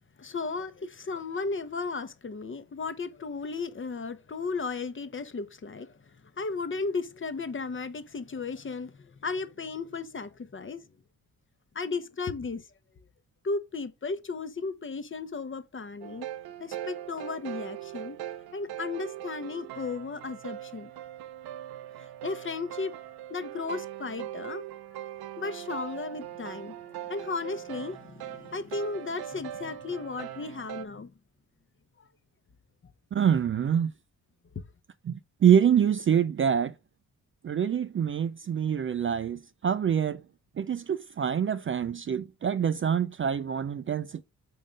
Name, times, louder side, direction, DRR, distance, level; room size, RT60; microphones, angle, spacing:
voice 1, 0.2-6.0 6.2-10.8 11.7-12.6 13.4-16.3 16.6-18.2 18.5-20.9 22.0-22.9 23.3-24.6 25.4-31.1 32.0-32.1 34.5-34.6, left 4 dB, 35° left, 0.8 m, -35 dB
sound 1, 16.0-30.9, right 12 dB, 80° right, 0.6 m, -41 dB
voice 2, 33.1-33.9 35.1-36.7 37.4-40.2 40.6-44.2, right 8 dB, 35° right, 0.4 m, -25 dB
5.4 x 3.8 x 5.0 m
supercardioid pair, 60°, 37 cm